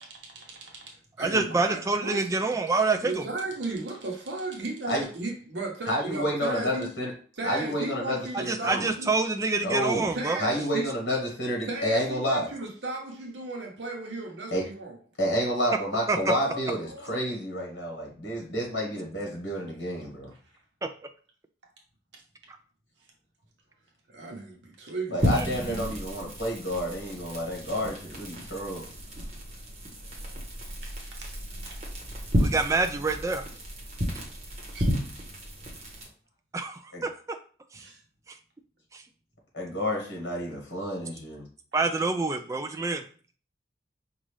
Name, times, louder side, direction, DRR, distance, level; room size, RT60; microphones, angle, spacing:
voice 1, 0.2-2.3 3.0-6.9 7.4-9.1 10.1-10.9 11.7-14.9 16.4-17.2 24.1-25.3 31.1-31.3 31.6-31.8 34.7-34.8 37.8-38.0, right 2 dB, 70° right, 0.9 m, -35 dB
voice 2, 1.2-3.2 8.3-10.4 16.1-16.3 20.8-20.9 32.4-33.4 36.5-37.1 37.7-37.8 38.9-39.0 41.7-43.0, right 3 dB, 15° right, 0.3 m, -26 dB
voice 3, 5.9-7.1 7.4-8.9 9.6-10.1 10.4-12.5 14.5-14.6 15.2-20.3 25.1-28.9 36.9-37.0 39.5-41.5, equal, 65° left, 1.3 m, -30 dB
sound 1, 25.2-36.1, equal, 35° right, 1.0 m, -32 dB
5.3 x 2.4 x 3.2 m
head